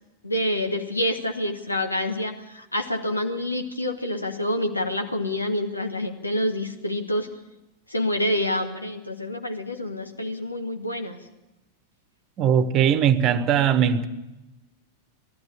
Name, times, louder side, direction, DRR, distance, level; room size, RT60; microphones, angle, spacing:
voice 1, 0.2-7.3 7.9-11.2, left 1 dB, 85° left, 2.0 m, -27 dB
voice 2, 12.4-14.0, right 8 dB, 35° right, 1.2 m, -20 dB
18.5 x 15.0 x 10.0 m
figure-of-eight pair, 90°, 0 cm